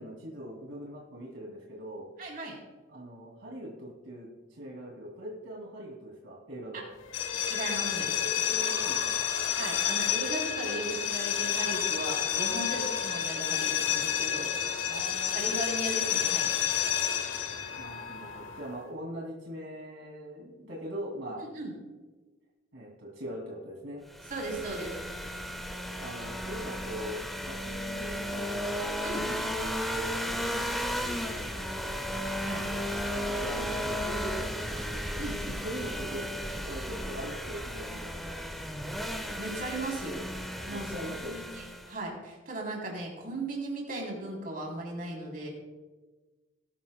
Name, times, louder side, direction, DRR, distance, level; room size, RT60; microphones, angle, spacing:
voice 1, 0.0-2.1 2.9-6.9 8.4-9.2 12.7-12.9 14.9-15.5 17.7-21.4 22.7-24.0 26.0-28.8 29.2-31.8 33.1-34.8 35.6-36.3 36.6-38.4 40.7-41.4, right 1 dB, 75° right, -3 dB, 2.6 m, -41 dB
voice 2, 2.2-2.6 6.7-6.8 7.5-8.1 9.6-14.5 15.3-16.5 21.4-21.7 24.3-25.0 29.0-29.3 32.4-32.6 35.2-35.6 39.4-40.2 40.6-40.9 41.3-45.5, right 2 dB, 50° right, -1 dB, 3.3 m, -37 dB
sound 1, 7.1-18.8, left 9 dB, 85° left, 1.1 m, -30 dB
sound 2, 24.1-42.0, equal, ahead, 1.1 m, -34 dB
19.5 x 11.5 x 2.2 m, 1.3 s
head